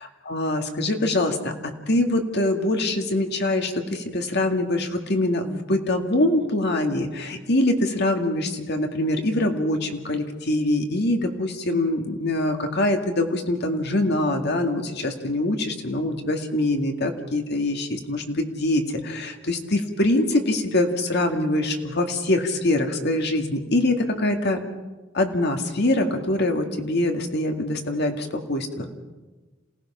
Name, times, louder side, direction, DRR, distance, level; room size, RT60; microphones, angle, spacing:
voice 1, 0.3-24.6 25.1-28.9, left 1 dB, 60° left, 4 dB, 2.1 m, -24 dB
28.0 x 18.0 x 5.8 m, 1.2 s
head